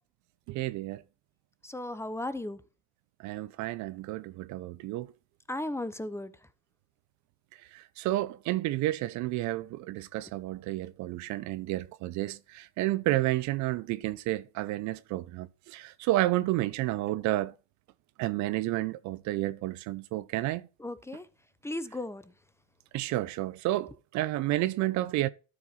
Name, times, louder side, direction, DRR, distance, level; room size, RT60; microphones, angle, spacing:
voice 1, 0.5-1.0 3.2-5.1 7.7-17.5 18.2-20.6 22.9-25.3, right 16 dB, 65° right, 0.7 m, -31 dB
voice 2, 1.6-2.6 5.5-6.3 20.8-21.3 21.6-22.2, left 1 dB, 10° left, 0.8 m, -35 dB
12.5 x 4.7 x 4.2 m
supercardioid pair, 75°, 31 cm